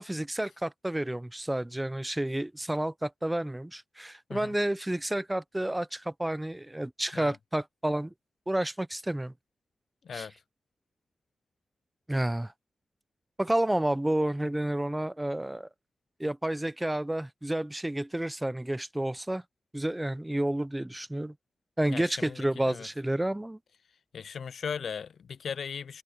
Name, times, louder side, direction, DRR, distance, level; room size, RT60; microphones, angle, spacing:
voice 1, 0.0-8.1 8.5-9.3 10.1-10.3 12.1-12.5 13.4-15.7 16.2-19.4 19.7-21.3 21.8-23.6, right 1 dB, 15° right, 0.7 m, -30 dB
voice 2, 21.9-22.9 24.1-26.0, left 6 dB, 75° left, 0.3 m, -38 dB
cardioid pair, 45°, 0 cm